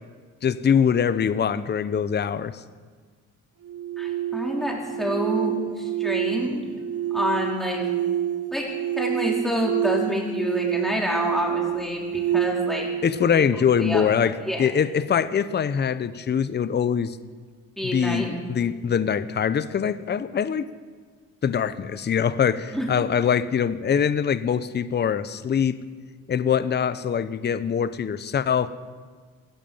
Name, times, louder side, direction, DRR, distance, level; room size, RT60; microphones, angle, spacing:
voice 1, 0.4-2.6 13.0-17.2 17.9-20.7 21.4-25.8 26.3-28.7, left 7 dB, 35° left, 14 dB, 0.7 m, -23 dB
sound 1, 3.6-14.7, right 11 dB, 55° right, 0.9 m, -28 dB
voice 2, 4.0-6.7 7.1-7.8 8.5-8.7 9.0-12.9 13.3-13.5 13.8-14.0 14.5-14.6 17.8-18.3 22.7-22.9, equal, ahead, -2 dB, 4.5 m, -27 dB
15.0 x 13.0 x 7.2 m, 1.5 s
cardioid pair, 90°, 30 cm